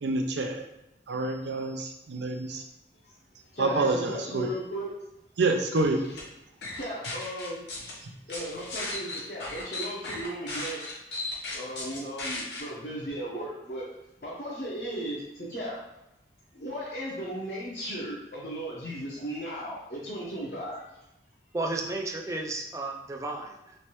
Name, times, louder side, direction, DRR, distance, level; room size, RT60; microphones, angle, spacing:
voice 1, 0.0-0.6 1.1-2.6 3.6-4.5 5.4-6.0, right 3 dB, 85° right, 4 dB, 0.5 m, -27 dB
voice 2, 3.5-4.9 6.7-7.6 8.3-10.8 11.5-13.8 14.2-15.8 16.5-20.8, right 1 dB, 50° left, -7 dB, 0.8 m, -36 dB
sound 1, 5.8-6.2 6.6-7.9 8.3-12.6, left 2 dB, 80° left, 1.0 m, -36 dB
voice 3, 21.5-23.8, right 2 dB, 15° right, 2 dB, 0.3 m, -33 dB
3.2 x 3.1 x 2.9 m, 0.88 s
head